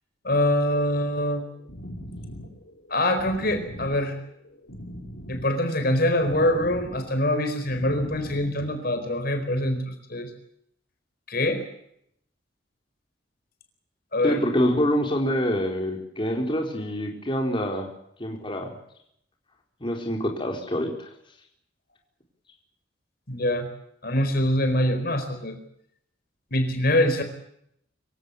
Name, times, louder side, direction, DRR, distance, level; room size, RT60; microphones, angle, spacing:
voice 1, 0.2-1.5 2.9-4.2 5.3-10.3 11.3-11.6 14.1-14.4 23.3-23.7 24.0-25.6 26.5-27.2, left 1 dB, 55° left, 7 dB, 4.5 m, -24 dB
sound 1, 1.4-8.5, equal, 75° left, 5.2 m, -41 dB
voice 2, 14.2-17.9 18.2-18.7 19.8-21.1, equal, 30° left, 2 dB, 4.2 m, -26 dB
25.5 x 16.5 x 8.4 m, 0.72 s
head